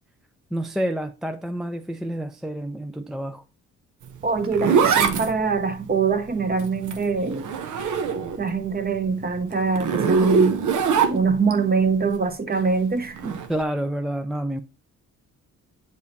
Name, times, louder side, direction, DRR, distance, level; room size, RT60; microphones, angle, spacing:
voice 1, 0.5-3.4 13.5-14.6, right 1 dB, ahead, 0.4 m, -28 dB
Zipper (clothing), 4.0-8.5 8.9-11.5 13.1-13.5, right 5 dB, 75° right, 0.9 m, -23 dB
voice 2, 4.2-7.5 8.4-10.7 11.1-13.4, right 5 dB, 30° right, 0.9 m, -24 dB
8.0 x 4.9 x 2.7 m
cardioid pair, 90°, 30 cm